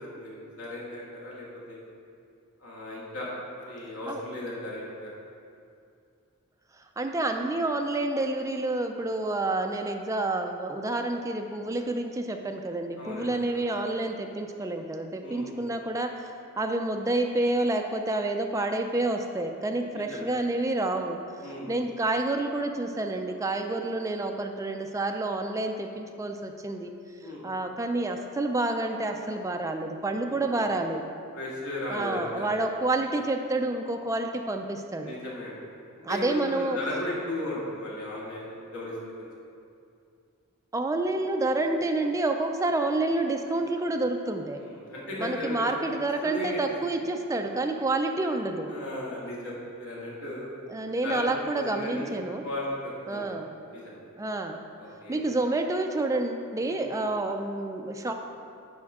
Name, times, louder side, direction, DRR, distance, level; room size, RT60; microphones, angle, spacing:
voice 1, 0.0-1.8 2.6-3.3 3.6-5.1 13.0-13.6 15.2-15.5 19.9-20.3 21.4-21.7 27.2-27.5 30.4-30.6 31.3-32.5 35.0-35.6 36.1-39.3 44.6-46.0 46.2-46.6 48.7-50.5 51.0-51.2 51.6-52.2 52.4-53.3 53.7-54.0 54.8-55.2 56.6-56.8, left 1 dB, 70° left, -5 dB, 1.8 m, -36 dB
voice 2, 7.0-16.3 16.6-21.2 21.4-26.9 27.4-31.0 31.9-35.2 36.0-36.8 40.7-44.6 45.2-48.8 50.7-52.5 53.1-53.5 54.2-54.6 55.1-58.1, right 2 dB, 15° right, 4 dB, 0.4 m, -29 dB
10.5 x 4.4 x 3.6 m, 2.5 s
head